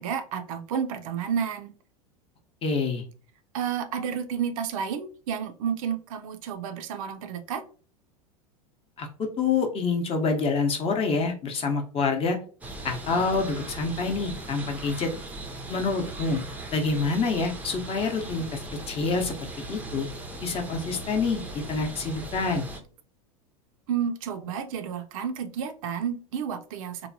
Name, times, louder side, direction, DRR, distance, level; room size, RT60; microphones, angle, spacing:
voice 1, 0.0-1.7 3.5-7.6 23.9-27.1, right 7 dB, 60° right, 0.4 m, -31 dB
voice 2, 2.6-3.0 9.0-12.4 12.8-15.1 15.7-16.4 16.7-18.6 18.9-20.1 20.4-21.4 21.7-22.7, left 4 dB, 30° left, 0.7 m, -27 dB
sound 1, 12.6-22.8, right 2 dB, 10° right, 0.5 m, -39 dB
3.0 x 2.1 x 2.6 m
hypercardioid pair, 90°, 20 cm